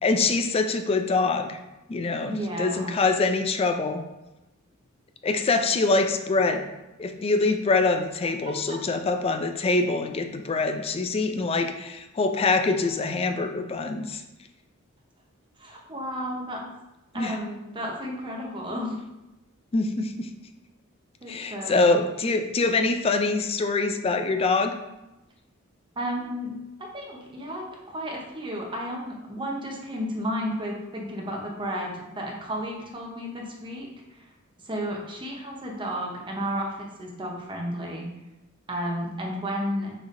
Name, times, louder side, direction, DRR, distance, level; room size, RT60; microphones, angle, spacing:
voice 1, 0.0-1.6 1.9-4.0 5.2-6.7 7.0-14.2 17.1-17.4 19.7-20.3 21.3-24.7, left 3 dB, 30° left, 6 dB, 0.3 m, -24 dB
voice 2, 2.2-3.0 8.7-8.8 15.6-16.6 17.1-19.0 21.2-21.9 26.0-26.5 26.8-34.3 34.6-38.1 38.7-39.9, equal, 25° right, -1 dB, 0.8 m, -32 dB
6.1 x 3.3 x 2.6 m, 0.97 s
head